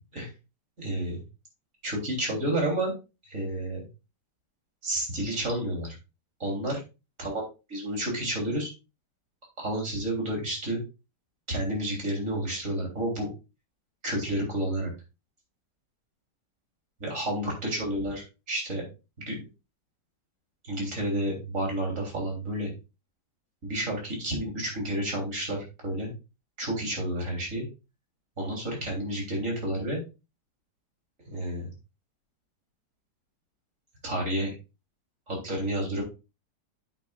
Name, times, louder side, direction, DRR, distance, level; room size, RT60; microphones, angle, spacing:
voice 1, 0.8-1.2 1.8-2.9 3.3-3.8 4.8-6.0 6.4-6.8 7.2-7.4 7.7-8.7 9.6-10.8 11.5-13.3 14.0-14.9 17.0-18.8 19.2-19.4 20.6-22.7 23.6-26.1 26.6-27.7 28.4-30.0 31.3-31.7 34.0-34.5 35.3-36.0, right 1 dB, 45° right, 0 dB, 3.8 m, -30 dB
8.9 x 8.3 x 2.4 m, 0.28 s
omnidirectional pair, 1.9 m